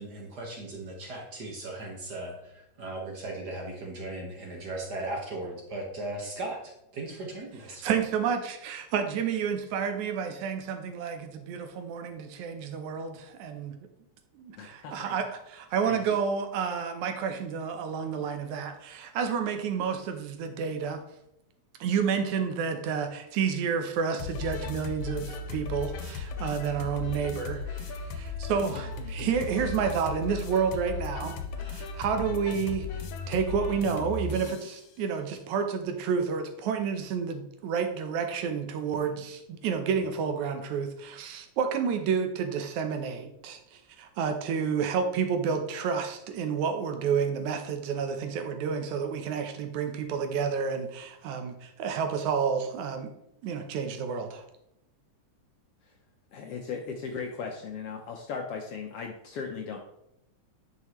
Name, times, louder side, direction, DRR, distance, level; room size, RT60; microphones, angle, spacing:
voice 1, 0.0-7.9, right 2 dB, 45° right, 0 dB, 1.4 m, -37 dB
voice 2, 7.8-13.8 14.4-21.0 21.8-53.1 53.4-54.4, right 6 dB, 80° right, 6 dB, 2.2 m, -30 dB
voice 3, 14.6-15.1 15.9-16.2 29.2-29.3 56.3-59.8, left 5 dB, 75° left, 2 dB, 1.4 m, -37 dB
sound 1, 24.2-34.8, left 4 dB, 90° left, 2.2 m, -36 dB
9.7 x 5.9 x 3.1 m, 0.81 s
omnidirectional pair, 3.3 m